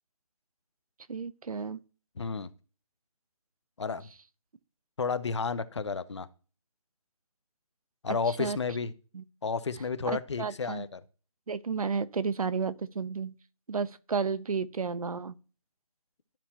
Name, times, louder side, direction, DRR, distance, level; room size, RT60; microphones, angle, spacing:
voice 1, 1.1-1.8 8.1-8.6 9.1-9.2 10.1-10.8 11.5-13.3 13.7-15.3, right 5 dB, 80° right, 0.6 m, -32 dB
voice 2, 2.2-2.5 3.8-4.1 5.0-6.3 8.0-8.9 9.4-11.0, left 5 dB, 50° left, 0.7 m, -32 dB
12.0 x 4.4 x 2.9 m
hypercardioid pair, 170°, 19 cm